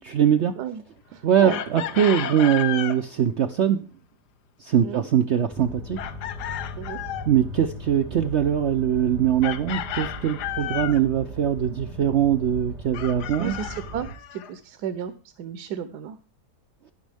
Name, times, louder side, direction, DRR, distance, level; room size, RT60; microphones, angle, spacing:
voice 1, 0.1-0.6 1.2-3.8 4.6-6.0 7.3-13.6, right 9 dB, 60° right, 9 dB, 0.7 m, -22 dB
voice 2, 1.1-1.6 4.8-5.0 6.8-7.0 13.4-16.2, right 9 dB, 85° right, 11 dB, 1.3 m, -33 dB
Chicken rooster, 1.5-3.0 6.0-7.3 9.4-11.0 12.9-14.5, left 11 dB, 85° left, 1.3 m, -32 dB
sound 1, 5.5-14.1, equal, ahead, 4.5 m, -38 dB
11.5 x 10.0 x 3.4 m, 0.37 s
omnidirectional pair, 1.7 m